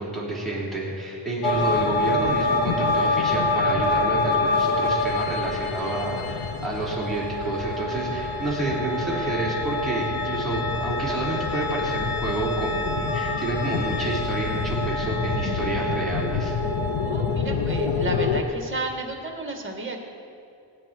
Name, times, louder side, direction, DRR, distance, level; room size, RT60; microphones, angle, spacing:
voice 1, 0.0-16.5, right 2 dB, ahead, -7 dB, 3.9 m, -29 dB
sound 1, 1.4-18.4, left 3 dB, 80° left, 1.1 m, -26 dB
voice 2, 17.0-20.0, right 2 dB, 25° right, 2 dB, 1.9 m, -32 dB
21.5 x 9.6 x 4.6 m, 2.5 s
wide cardioid pair, 140°, 46 cm